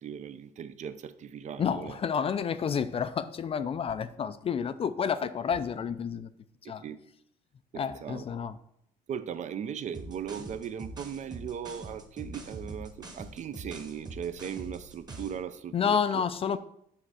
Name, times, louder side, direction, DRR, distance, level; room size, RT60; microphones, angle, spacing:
voice 1, 0.0-2.0 6.6-7.0 7.7-8.2 9.1-16.2, right 8 dB, 45° right, 12 dB, 0.5 m, -38 dB
voice 2, 1.6-6.3 6.6-6.8 7.7-8.6 15.7-16.6, left 7 dB, 35° left, 13 dB, 0.4 m, -30 dB
sound 1, 9.9-15.4, right 2 dB, 25° right, 1.2 m, -43 dB
7.5 x 3.3 x 6.2 m, 0.73 s
cardioid pair, 110°, 17 cm